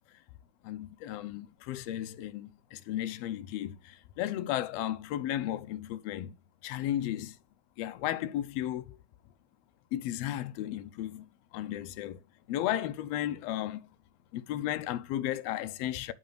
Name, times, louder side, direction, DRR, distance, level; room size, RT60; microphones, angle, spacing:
voice 1, 0.6-6.3 6.6-7.4 7.8-9.0 9.9-11.3 11.5-12.2 12.5-13.8 14.3-16.1, left 12 dB, 80° left, 1.5 m, -34 dB
8.0 x 4.0 x 6.3 m
omnidirectional pair, 3.4 m